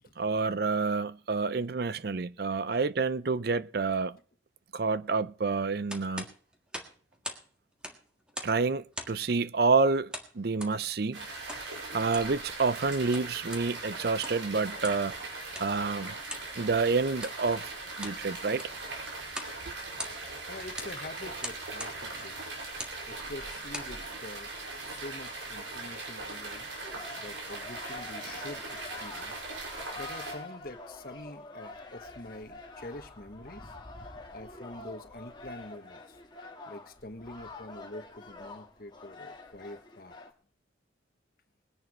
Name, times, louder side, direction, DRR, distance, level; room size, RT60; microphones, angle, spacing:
voice 1, 0.2-4.2 4.7-6.3 8.4-11.6 11.9-15.1 15.6-16.1 16.6-17.7 18.0-18.6, right 4 dB, 55° right, 0.5 m, -28 dB
sound 1, 5.9-7.5 7.7-8.6 8.9-9.3 10.1-10.8 11.5-11.7 12.0-12.4 12.9-13.7 14.1-14.5 14.8-15.1 15.5-15.7 16.3-16.5 17.1-17.4 17.8-18.2 18.5-18.8 19.3-19.6 19.8-20.4 20.8-21.0 21.4-22.0 22.7-23.0 23.5-23.9, equal, 5° right, 1.6 m, -41 dB
sound 2, 11.1-30.4, right 3 dB, 85° right, 5.6 m, -40 dB
voice 2, 20.2-22.4 23.1-24.5 24.8-29.4 29.6-33.7 34.0-36.2 36.6-40.1, left 1 dB, 50° left, 1.4 m, -46 dB
sound 3, 26.8-40.3, left 3 dB, 25° left, 1.6 m, -46 dB
21.0 x 10.5 x 3.1 m
head